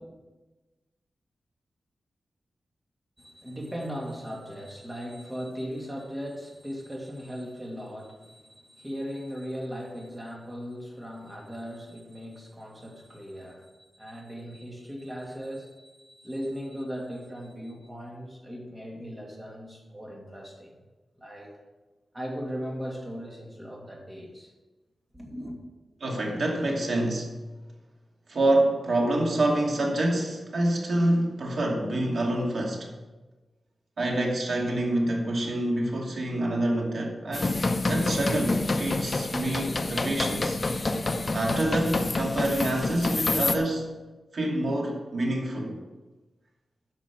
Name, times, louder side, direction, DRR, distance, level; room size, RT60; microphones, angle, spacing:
voice 1, 3.2-20.7 21.2-21.5 22.1-24.5 25.1-25.6, equal, 15° right, -1 dB, 2.6 m, -38 dB
voice 2, 26.0-27.3 28.3-32.9 34.0-40.6 41.3-43.9 44.3-45.8, right 1 dB, 60° right, -1 dB, 2.6 m, -27 dB
sound 1, 37.3-43.6, left 2 dB, 35° left, 0.8 m, -28 dB
11.0 x 6.1 x 7.2 m, 1.2 s
wide cardioid pair, 110°, 0 cm